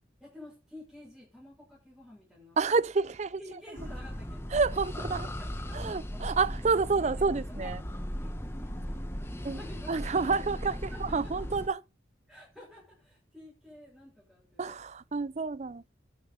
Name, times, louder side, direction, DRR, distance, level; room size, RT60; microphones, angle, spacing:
voice 1, 0.2-2.8 3.4-4.4 4.9-7.7 8.2-10.7 10.9-11.5 12.3-14.8, left 1 dB, ahead, 7.0 m, -51 dB
voice 2, 2.6-3.4 4.5-5.3 5.7-7.8 9.4-9.6 9.9-11.8 14.6-15.9, right 4 dB, 40° right, 0.5 m, -29 dB
sound 1, 3.8-11.7, equal, 15° left, 1.5 m, -37 dB
12.0 x 7.5 x 5.4 m
head